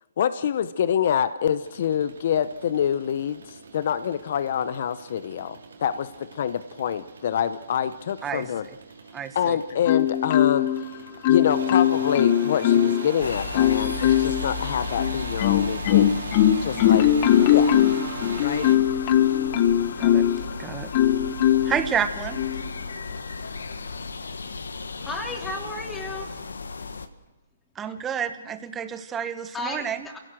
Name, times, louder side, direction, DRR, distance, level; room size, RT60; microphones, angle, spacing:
voice 1, 0.2-8.7 9.3-16.2 16.6-17.1 17.4-17.9 18.4-18.7, left 9 dB, 55° left, 13 dB, 0.9 m, -26 dB
sound 1, 1.6-18.8, right 5 dB, 75° right, 4.0 m, -40 dB
voice 2, 9.1-9.6 16.8-16.9 20.0-20.2 20.6-20.9 21.6-22.4 27.7-30.1, right 8 dB, 15° right, 10 dB, 1.5 m, -29 dB
Marimba xylophone, 9.9-10.8 11.2-13.1 13.5-14.4 15.0-20.4 20.9-21.8 22.4-22.6, left 11 dB, 35° left, 1.2 m, -20 dB
sound 2, 13.2-27.1, left 5 dB, 80° left, 1.6 m, -35 dB
voice 3, 25.0-26.4 29.5-30.2, left 2 dB, 10° left, 2 dB, 3.4 m, -33 dB
28.5 x 17.0 x 6.4 m, 1.1 s
hypercardioid pair, 140°, 0 cm